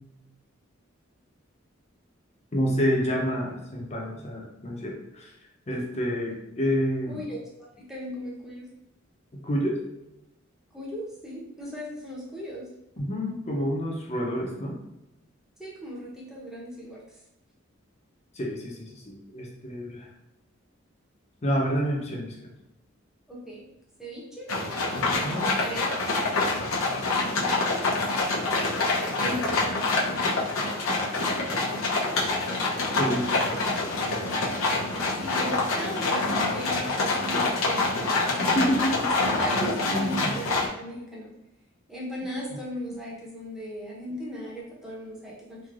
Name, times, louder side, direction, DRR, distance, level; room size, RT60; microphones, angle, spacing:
voice 1, 2.5-5.3 5.7-7.2 9.4-9.8 13.0-14.8 18.4-20.1 21.4-22.3 25.2-25.5 33.0-33.4 38.4-39.1 39.9-40.3, equal, 35° left, -1 dB, 0.6 m, -28 dB
voice 2, 7.1-8.7 10.7-12.7 15.6-17.0 23.3-23.6 24.0-24.5 25.6-26.2 27.4-27.9 29.2-29.8 35.2-38.8 39.4-41.3 41.9-45.6, equal, 5° right, -6 dB, 0.8 m, -37 dB
sound 1, 24.5-40.7, left 3 dB, 85° left, 0.6 m, -26 dB
3.2 x 2.7 x 2.4 m, 0.88 s
head